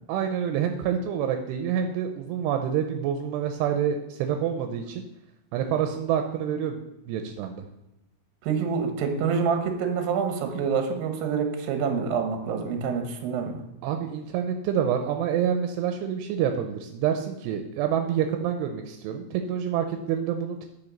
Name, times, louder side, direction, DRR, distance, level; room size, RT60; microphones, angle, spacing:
voice 1, 0.1-5.0 5.5-6.8 7.1-7.6 13.8-20.7, right 8 dB, 85° right, 5 dB, 2.7 m, -27 dB
voice 2, 8.4-13.6, right 6 dB, 70° right, 5 dB, 2.6 m, -27 dB
8.8 x 6.3 x 5.3 m, 0.91 s
omnidirectional pair, 4.9 m